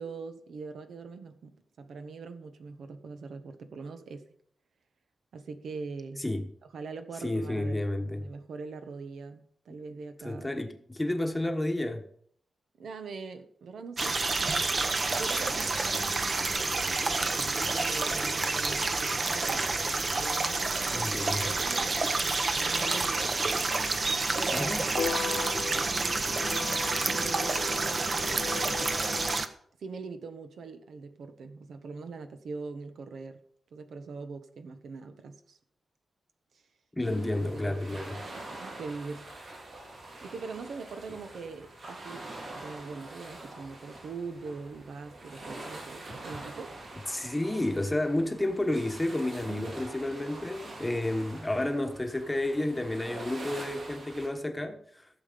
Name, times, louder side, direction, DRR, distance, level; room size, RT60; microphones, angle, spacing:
voice 1, 0.0-4.3 5.3-6.2 6.7-10.7 11.0-11.1 12.8-19.7 20.1-21.1 21.4-23.9 24.3-28.9 29.8-33.4 33.7-35.6 37.1-37.2 37.5-38.0 38.3-39.3 40.2-46.8 49.5-49.8, right 4 dB, 80° right, 1.3 m, -42 dB
voice 2, 7.2-8.3 10.2-12.1 20.9-21.5 24.5-24.9 36.9-38.2 47.1-55.1, left 1 dB, 10° left, 1.2 m, -31 dB
sound 1, 14.0-29.5, right 3 dB, 35° right, 0.9 m, -29 dB
sound 2, 24.9-29.3, left 6 dB, 60° left, 0.5 m, -37 dB
sound 3, 37.0-54.3, right 2 dB, 60° right, 4.8 m, -45 dB
15.5 x 7.4 x 5.2 m
wide cardioid pair, 165°, 0 cm